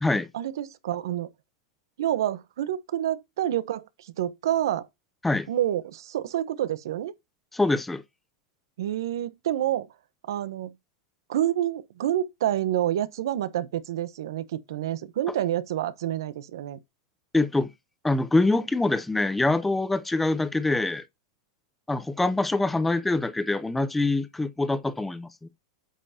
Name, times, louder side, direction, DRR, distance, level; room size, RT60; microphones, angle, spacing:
voice 1, 0.3-1.3 2.0-4.9 5.5-7.1 8.8-9.9 10.3-10.7 11.3-16.8, right 12 dB, 80° right, 0.9 m, -28 dB
voice 2, 7.5-8.0 17.3-17.7 18.0-21.0 21.9-25.5, left 2 dB, 5° left, 0.6 m, -24 dB
8.5 x 5.6 x 2.8 m
supercardioid pair, 155°, 2 cm